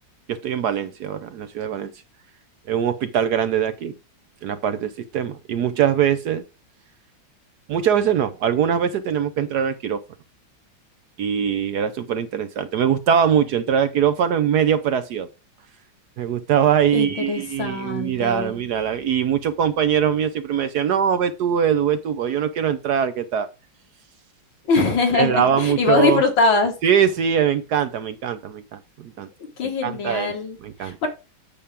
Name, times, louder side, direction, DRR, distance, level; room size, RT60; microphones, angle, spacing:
voice 1, 0.3-1.9 2.7-3.9 4.4-6.4 7.7-10.0 11.2-15.3 16.2-23.5 25.1-26.2 26.8-29.3 29.8-30.3 30.6-31.0, right 8 dB, 65° right, 1.1 m, -22 dB
voice 2, 16.9-18.6 24.7-26.8 29.6-31.1, left 3 dB, 75° left, 2.5 m, -22 dB
8.5 x 7.1 x 3.5 m
omnidirectional pair, 2.2 m